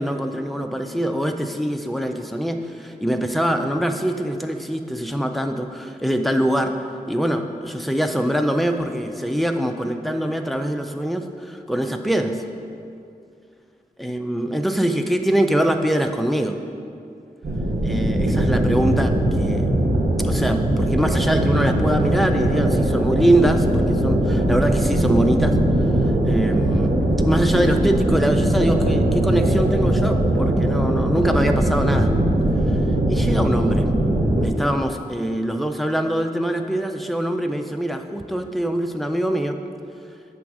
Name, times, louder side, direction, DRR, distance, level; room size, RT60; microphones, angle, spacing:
voice 1, 0.0-6.8 7.1-12.4 14.0-16.6 17.8-19.7 20.2-25.6 26.2-27.0 27.2-32.2 32.7-32.8 33.1-33.9 34.4-39.6, right 1 dB, ahead, 5 dB, 0.4 m, -23 dB
sound 1, 17.4-34.5, right 1 dB, 65° right, 0.9 m, -20 dB
7.4 x 3.5 x 6.1 m, 2.5 s
wide cardioid pair, 75°, 16 cm